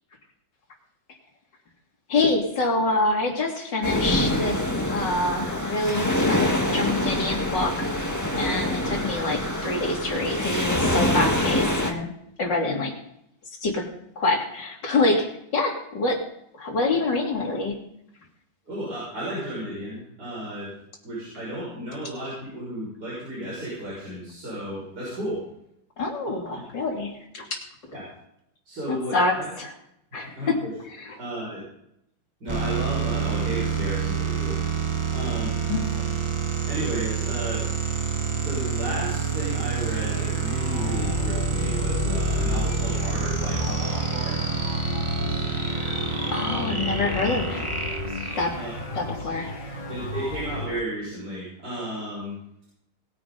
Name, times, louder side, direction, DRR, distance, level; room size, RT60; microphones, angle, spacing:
voice 1, 2.1-4.6 4.9-7.9 8.4-12.1 12.4-12.9 13.6-13.9 14.2-15.3 15.5-16.2 16.5-17.7 26.0-27.6 28.9-29.7 30.1-30.6 31.0-31.2 35.7-36.2 46.3-47.8 48.4-48.5 49.0-49.6, left 2 dB, 75° left, 0 dB, 3.5 m, -26 dB
sound 1, 3.8-11.9, left 1 dB, 10° left, 1.6 m, -25 dB
voice 2, 18.7-20.7 21.0-25.4 26.2-26.7 27.9-28.1 28.7-29.5 30.4-30.7 31.2-31.6 32.4-34.6 35.1-35.6 36.7-37.7 38.3-44.4 48.5-48.7 49.9-52.4, right 1 dB, 60° right, -8 dB, 7.0 m, -33 dB
sound 2, 32.5-48.9, right 6 dB, 15° right, 1.5 m, -28 dB
sound 3, 39.8-50.8, left 4 dB, 40° left, 5.5 m, -32 dB
20.5 x 9.9 x 4.0 m, 0.76 s
omnidirectional pair, 2.0 m